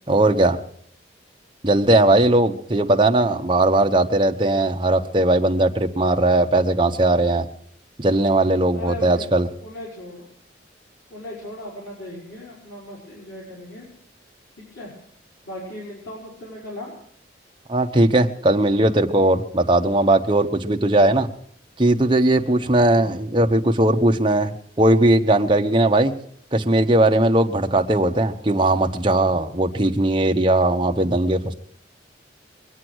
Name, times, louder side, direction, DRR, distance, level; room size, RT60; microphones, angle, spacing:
voice 1, 0.1-0.6 1.6-7.5 8.0-9.5 17.7-21.3 21.8-26.1 26.5-31.5, right 1 dB, 25° right, 4 dB, 1.0 m, -18 dB
voice 2, 8.7-9.3 9.6-10.3 11.1-13.9 14.7-14.9 15.5-16.9 22.9-23.2, left 1 dB, 85° left, -5 dB, 5.2 m, -37 dB
23.0 x 9.0 x 6.3 m, 0.65 s
head